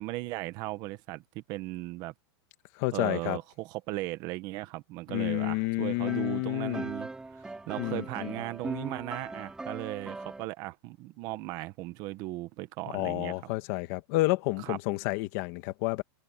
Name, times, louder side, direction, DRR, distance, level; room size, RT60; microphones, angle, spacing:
voice 1, 0.0-2.1 2.9-13.5 14.6-14.8, right 18 dB, 30° right, 1.2 m, -37 dB
voice 2, 2.8-3.4 5.1-6.9 7.8-8.3 12.9-16.0, left 20 dB, 35° left, 1.8 m, -30 dB
sound 1, 5.9-10.4, right 2 dB, 5° right, 3.4 m, -40 dB
supercardioid pair, 170°, 14 cm